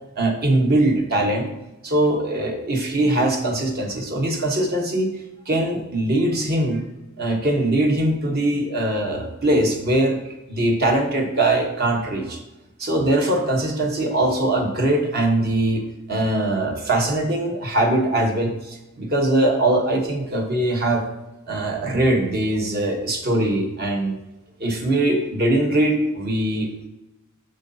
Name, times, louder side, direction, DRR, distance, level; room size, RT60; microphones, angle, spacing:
voice 1, 0.2-1.4 1.8-5.1 5.5-6.9 7.2-12.4 12.8-15.8 16.1-21.0 21.5-24.2 24.6-26.9, right 1 dB, 45° right, 2 dB, 1.2 m, -21 dB
8.0 x 6.5 x 2.8 m, 0.97 s
head